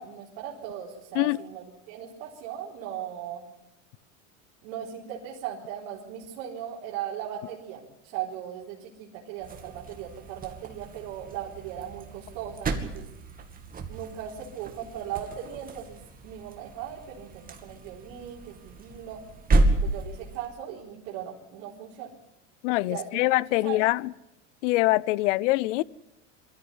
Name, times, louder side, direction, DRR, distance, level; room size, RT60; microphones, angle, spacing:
voice 1, 0.0-3.4 4.6-7.8 8.1-13.1 13.9-19.2 19.7-22.2 22.8-23.3 23.6-23.9, right 10 dB, 55° right, 4.0 m, -38 dB
sound 1, 9.4-20.5, right 2 dB, 20° right, 2.5 m, -31 dB
voice 2, 22.6-24.1 24.6-25.8, left 19 dB, 70° left, 0.7 m, -24 dB
22.0 x 14.0 x 9.8 m
supercardioid pair, 130°, 38 cm